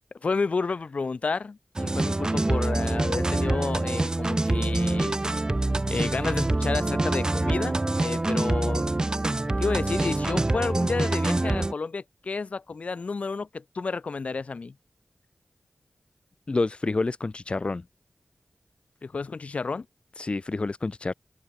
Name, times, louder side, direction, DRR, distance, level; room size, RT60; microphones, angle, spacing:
voice 1, 0.2-5.2 5.9-8.9 9.6-14.7 19.0-19.9, left 4 dB, 65° left, 0.8 m, -31 dB
sound 1, 1.8-11.7, right 2 dB, 30° right, 0.8 m, -25 dB
voice 2, 16.5-17.8 20.2-21.1, left 3 dB, 50° left, 1.7 m, -28 dB
cardioid pair, 50°, 2 cm